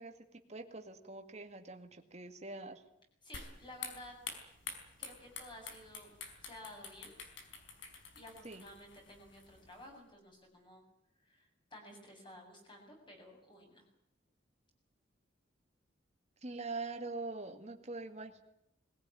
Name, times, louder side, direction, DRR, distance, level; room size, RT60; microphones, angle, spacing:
voice 1, 0.0-2.8 8.4-8.6 16.4-18.4, right 3 dB, 35° right, 6 dB, 2.1 m, -44 dB
voice 2, 3.2-4.2 5.0-6.1 6.4-7.1 8.1-10.8 11.2-13.8, left 1 dB, 25° left, 1 dB, 7.6 m, -53 dB
sound 1, 3.3-9.9, left 5 dB, 75° left, 4.7 m, -49 dB
21.5 x 17.0 x 10.0 m, 0.79 s
head